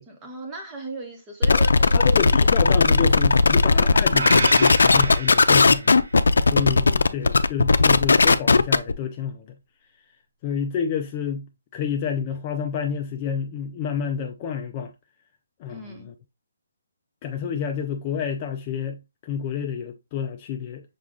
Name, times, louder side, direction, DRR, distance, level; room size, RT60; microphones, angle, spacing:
voice 1, 0.1-2.0 15.7-16.1, right 2 dB, 10° right, 1.0 m, -37 dB
sound 1, 1.4-8.9, left 4 dB, 85° left, 0.4 m, -17 dB
voice 2, 1.9-5.9 6.5-9.5 10.4-11.5 11.7-14.9 15.6-16.1 17.2-20.8, left 7 dB, 20° left, 0.3 m, -29 dB
sound 2, 4.1-6.3, right 3 dB, 80° right, 1.3 m, -30 dB
6.1 x 2.3 x 3.6 m
hypercardioid pair, 170°, 0 cm